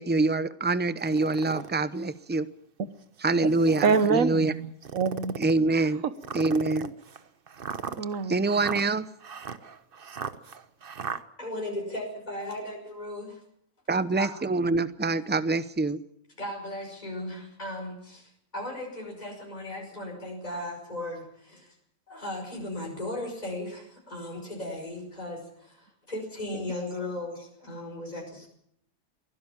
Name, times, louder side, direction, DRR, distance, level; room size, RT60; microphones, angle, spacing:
voice 1, 0.0-2.5 3.2-4.5 5.4-6.0 6.3-6.9 8.3-9.1 13.9-16.0, right 3 dB, 15° right, 14 dB, 0.4 m, -25 dB
sound 1, 1.0-1.7 2.3-2.4 3.4-4.1 4.8-5.6 6.2-11.2, right 6 dB, 45° right, 1.1 m, -37 dB
voice 2, 3.8-5.4 8.0-8.3, right 5 dB, 70° right, 12 dB, 1.6 m, -25 dB
voice 3, 11.4-13.4 14.2-14.3 16.4-21.7 22.1-28.5, left 1 dB, 30° left, 0 dB, 5.7 m, -36 dB
23.0 x 16.5 x 7.3 m, 0.73 s
omnidirectional pair, 1.5 m